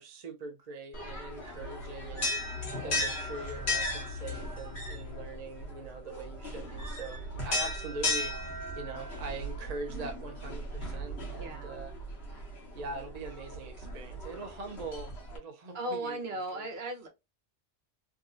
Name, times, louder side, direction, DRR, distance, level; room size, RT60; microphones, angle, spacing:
voice 1, 0.0-2.6 2.8-11.9 12.7-16.8, right 3 dB, 40° right, 0.6 m, -42 dB
sound 1, 0.9-15.4, left 1 dB, 60° left, 1.6 m, -36 dB
voice 2, 11.4-11.7 15.7-17.1, right 1 dB, 55° right, 1.2 m, -36 dB
3.5 x 2.8 x 2.5 m
omnidirectional pair, 1.3 m